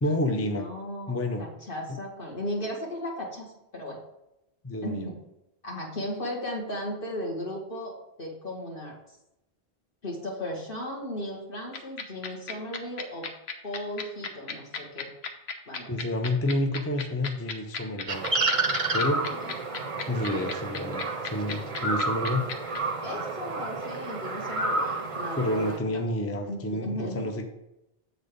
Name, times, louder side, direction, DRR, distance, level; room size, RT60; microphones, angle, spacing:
voice 1, 0.0-0.7 1.1-1.4 4.6-5.1 15.9-18.3 18.9-19.3 20.0-22.5 25.4-27.5, left 1 dB, 20° left, 5 dB, 0.5 m, -29 dB
voice 2, 0.6-4.0 4.8-5.2 5.6-7.9 8.2-9.0 10.0-13.3 13.6-15.1 15.7-16.0 19.2-19.5 23.0-26.0 26.5-27.3, equal, 55° left, -2 dB, 1.9 m, -36 dB
sound 1, 11.7-22.8, left 6 dB, 85° left, 1.1 m, -34 dB
sound 2, 18.1-25.8, right 2 dB, 40° right, 0.6 m, -30 dB
7.8 x 4.1 x 5.1 m, 0.89 s
omnidirectional pair, 1.1 m